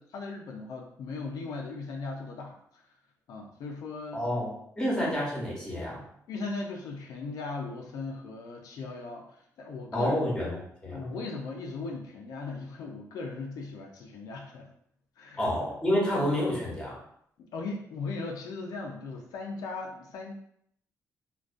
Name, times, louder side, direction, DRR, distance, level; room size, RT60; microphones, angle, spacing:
voice 1, 0.0-2.8 3.3-4.2 6.3-10.3 10.8-14.7 15.2-15.4 17.4-20.3, left 3 dB, 80° left, 1 dB, 0.4 m, -38 dB
voice 2, 4.1-6.0 9.9-10.6 10.8-11.1 15.4-17.0, left 1 dB, 10° left, -5 dB, 0.8 m, -29 dB
2.3 x 2.2 x 2.5 m, 0.71 s
cardioid pair, 140°, 6 cm